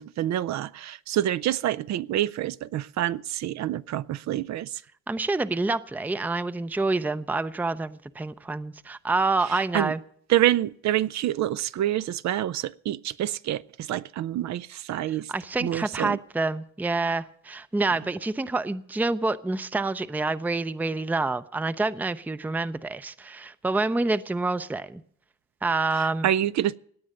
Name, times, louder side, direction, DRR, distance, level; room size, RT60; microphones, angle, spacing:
voice 1, 0.0-4.8 9.5-9.9 10.3-15.3 15.6-16.2 25.9-26.8, right 12 dB, 65° right, 0.5 m, -27 dB
voice 2, 5.1-10.0 15.3-25.0 25.6-26.3, right 3 dB, 5° right, 0.5 m, -27 dB
17.5 x 9.3 x 6.5 m
cardioid pair, 90°, 30 cm